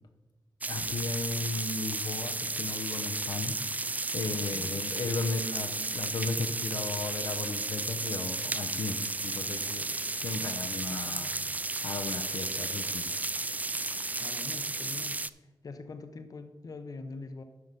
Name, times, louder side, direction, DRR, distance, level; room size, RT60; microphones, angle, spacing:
sound 1, 0.6-15.3, right 3 dB, 20° right, 0.3 m, -33 dB
voice 1, 0.7-9.9 10.2-11.5 11.8-13.1, left 4 dB, 90° left, 5 dB, 0.8 m, -35 dB
voice 2, 4.3-4.9 14.2-15.2 15.6-17.4, left 3 dB, 55° left, 8 dB, 0.8 m, -43 dB
12.5 x 4.7 x 5.3 m, 1.2 s
wide cardioid pair, 80°, 7 cm